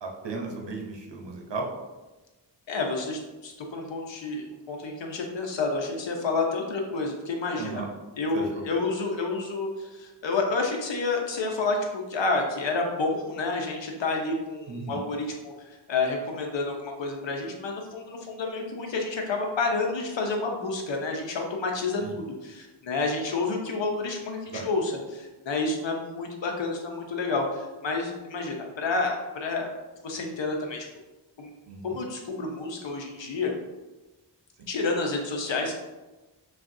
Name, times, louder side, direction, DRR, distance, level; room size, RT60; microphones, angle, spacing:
voice 1, 0.0-1.7 7.6-7.9 8.3-8.5 8.7-8.8 14.7-15.0 22.0-22.2 24.5-24.6 31.7-32.0 34.6-34.7, right 4 dB, 65° right, 1 dB, 0.9 m, -35 dB
voice 2, 2.7-7.8 8.2-29.7 30.0-30.9 31.4-31.5 31.8-33.5 34.7-35.7, left 3 dB, 75° left, 2 dB, 0.8 m, -29 dB
6.0 x 2.5 x 2.6 m, 1.1 s
wide cardioid pair, 70°, 45 cm